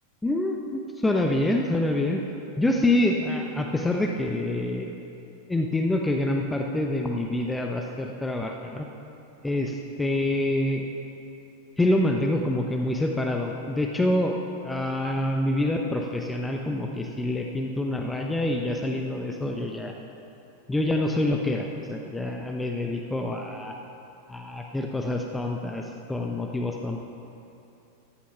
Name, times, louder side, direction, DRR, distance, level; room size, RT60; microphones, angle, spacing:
voice 1, 0.2-2.2 2.6-4.9 5.5-8.9 9.4-10.9 11.8-14.4 14.6-19.9 20.7-23.7 24.3-27.0, left 1 dB, 5° left, 2 dB, 0.9 m, -26 dB
15.0 x 11.5 x 5.7 m, 2.8 s
figure-of-eight pair, 90°, 0 cm